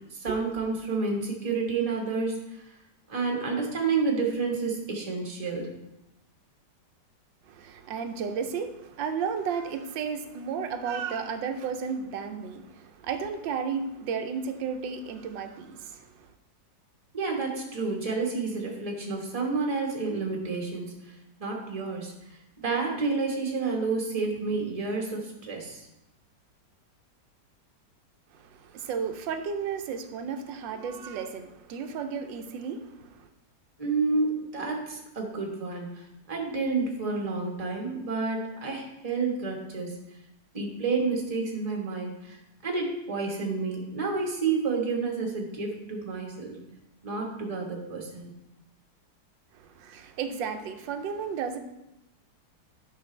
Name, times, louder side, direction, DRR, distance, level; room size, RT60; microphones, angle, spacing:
voice 1, 0.1-2.7 3.1-5.7 17.1-21.1 21.4-22.1 22.6-25.9 33.8-40.0 40.5-42.4 42.6-46.6 47.0-48.3, right 4 dB, 20° right, 0 dB, 1.2 m, -30 dB
voice 2, 7.5-16.3 28.3-33.3 49.5-51.6, right 6 dB, 90° right, 7 dB, 1.4 m, -33 dB
10.0 x 5.9 x 3.2 m, 0.89 s
omnidirectional pair, 2.0 m